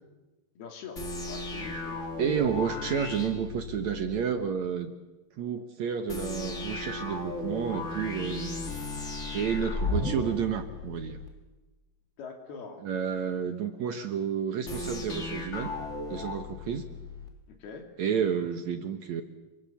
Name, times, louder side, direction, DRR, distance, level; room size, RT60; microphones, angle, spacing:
voice 1, 0.6-2.3 12.2-12.9 17.5-17.9, left 5 dB, 80° left, 4 dB, 4.9 m, -44 dB
sound 1, 1.0-4.2 6.1-11.3 14.7-17.3, left 2 dB, 25° left, 2.0 m, -35 dB
voice 2, 2.2-4.9 5.4-8.6 9.3-11.2 12.8-15.7 16.1-16.9 18.0-19.2, right 7 dB, 60° right, 7 dB, 2.0 m, -30 dB
27.5 x 24.0 x 7.2 m, 1.1 s
omnidirectional pair, 4.4 m